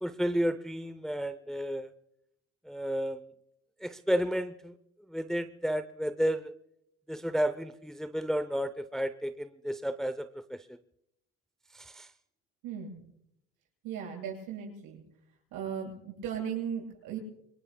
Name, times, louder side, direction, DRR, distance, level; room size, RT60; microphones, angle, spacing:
voice 1, 0.0-1.9 2.7-3.2 3.8-4.7 5.1-6.5 7.1-10.6 11.7-12.1, equal, ahead, 11 dB, 0.7 m, -32 dB
voice 2, 12.6-13.1 13.8-15.0 15.5-17.2, right 8 dB, 70° right, 0 dB, 7.6 m, -37 dB
26.5 x 22.0 x 2.3 m, 0.78 s
supercardioid pair, 85°, 33 cm